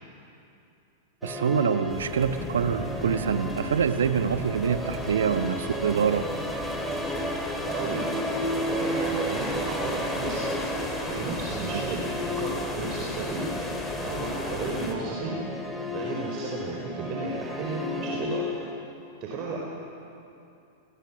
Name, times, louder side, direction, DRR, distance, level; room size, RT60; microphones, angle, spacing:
Musical instrument, 1.2-18.8, left 1 dB, 5° right, 3.0 m, -34 dB
voice 1, 1.2-6.3 11.7-11.8, right 7 dB, 70° right, 9 dB, 1.2 m, -25 dB
sound 1, 1.9-15.0, left 2 dB, 15° left, 3.9 m, -35 dB
voice 2, 7.7-8.1 8.7-10.5 11.0-12.1 12.4-13.5 14.0-15.4 15.9-18.4 19.2-19.6, right 4 dB, 40° right, -2 dB, 4.4 m, -33 dB
30.0 x 20.5 x 6.2 m, 2.7 s
figure-of-eight pair, 95°, 0 cm